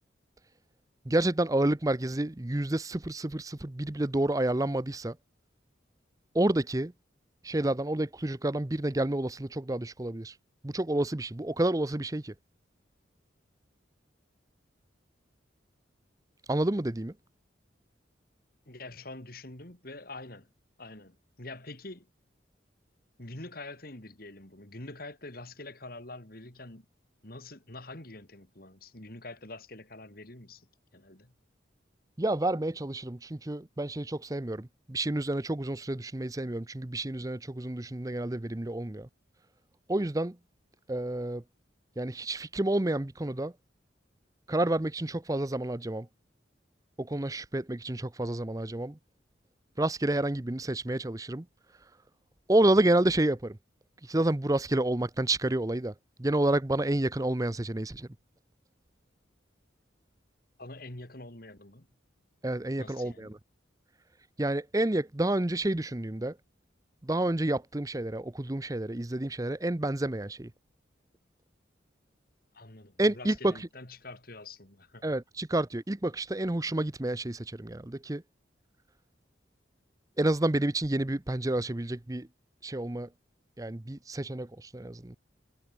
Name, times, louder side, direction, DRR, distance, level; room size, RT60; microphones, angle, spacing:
voice 1, 1.1-5.2 6.3-6.9 7.4-10.3 10.6-12.3 16.5-17.1 32.2-39.1 39.9-40.4 40.9-41.4 42.0-43.5 44.5-46.1 47.0-49.0 49.8-51.5 52.5-53.6 54.0-55.9 56.2-58.1 62.4-63.4 64.4-66.4 67.0-70.5 73.0-73.5 75.0-78.2 80.2-82.3 82.6-83.1 83.6-85.2, right 1 dB, 20° right, 0.7 m, -29 dB
voice 2, 18.7-20.5 20.8-22.1 23.2-26.8 27.2-30.7 30.9-31.3 60.6-61.9 62.8-63.3 72.5-75.1, left 2 dB, 50° left, 3.1 m, -45 dB
head